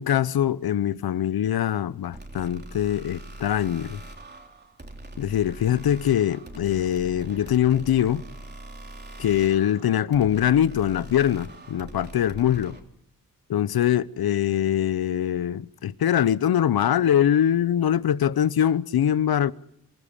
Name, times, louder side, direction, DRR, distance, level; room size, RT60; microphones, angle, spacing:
voice 1, 0.0-4.0 5.2-8.2 9.2-12.8 13.5-19.5, left 10 dB, 75° left, 0.8 m, -23 dB
sound 1, 2.1-12.8, right 1 dB, 25° right, 3.3 m, -42 dB
26.0 x 15.0 x 7.3 m
cardioid pair, 55°, 37 cm